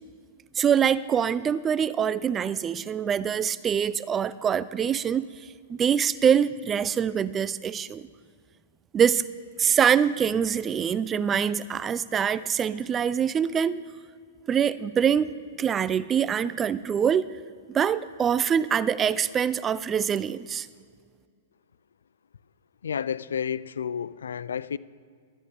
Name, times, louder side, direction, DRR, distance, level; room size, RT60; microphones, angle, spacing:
voice 1, 0.6-5.2 5.7-8.1 8.9-9.3 9.6-13.8 14.5-17.3 17.7-20.7, right 8 dB, 20° right, 0.4 m, -24 dB
voice 2, 22.8-24.8, left 7 dB, 85° left, 0.4 m, -31 dB
21.0 x 13.0 x 3.5 m
hypercardioid pair, 135°, 0 cm